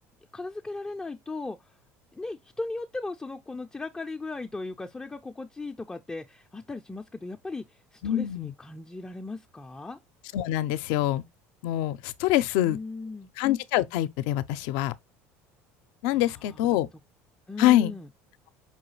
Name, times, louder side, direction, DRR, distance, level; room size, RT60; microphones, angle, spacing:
voice 1, 0.3-1.8 2.1-10.0 12.6-13.3 16.1-16.8 17.5-18.1, left 3 dB, 10° left, 0.3 m, -37 dB
voice 2, 8.0-8.5 10.3-11.2 11.6-12.8 13.4-14.9 16.0-16.9 17.6-17.9, left 13 dB, 75° left, 0.4 m, -25 dB
5.5 x 2.3 x 3.1 m
supercardioid pair, 105°, 7 cm